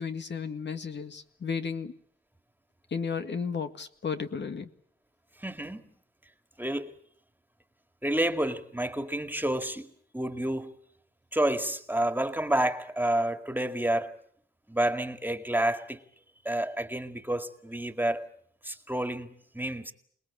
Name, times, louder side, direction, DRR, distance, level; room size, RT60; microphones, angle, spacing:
voice 1, 0.0-1.9 2.9-4.7, left 6 dB, 70° left, 1.9 m, -33 dB
voice 2, 5.4-5.8 6.6-6.9 8.0-10.7 11.3-14.2 14.7-16.0 16.4-18.3 18.6-19.3 19.5-19.9, right 1 dB, 10° right, 2.2 m, -29 dB
27.5 x 19.5 x 8.6 m
cardioid pair, 80°, 19 cm